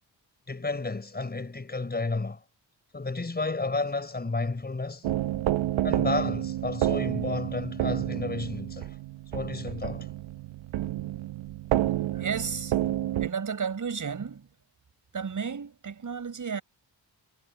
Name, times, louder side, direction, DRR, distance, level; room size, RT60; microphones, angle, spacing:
voice 1, 0.5-2.4 2.9-5.1 5.8-9.0 9.3-10.1, left 3 dB, 20° left, 4.7 m, -31 dB
sound 1, 5.0-13.3, right 13 dB, 85° right, 0.8 m, -29 dB
voice 2, 12.1-12.8 13.2-14.5 15.1-16.6, right 6 dB, 40° right, 6.0 m, -33 dB
wide cardioid pair, 140°, 45 cm